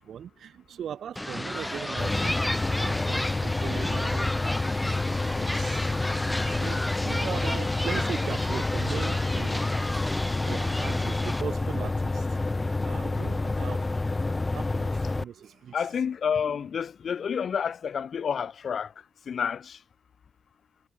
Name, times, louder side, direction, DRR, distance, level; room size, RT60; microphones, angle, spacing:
voice 1, 0.0-9.7 10.1-14.0 14.4-15.7, right 9 dB, 65° right, 2.5 m, -40 dB
sound 1, 1.2-11.4, left 1 dB, 10° left, 4.1 m, -33 dB
sound 2, 2.0-15.2, left 2 dB, 25° left, 1.5 m, -28 dB
voice 2, 15.7-18.9 19.3-19.8, left 7 dB, 55° left, 4.1 m, -29 dB
hypercardioid pair, 50°, 0 cm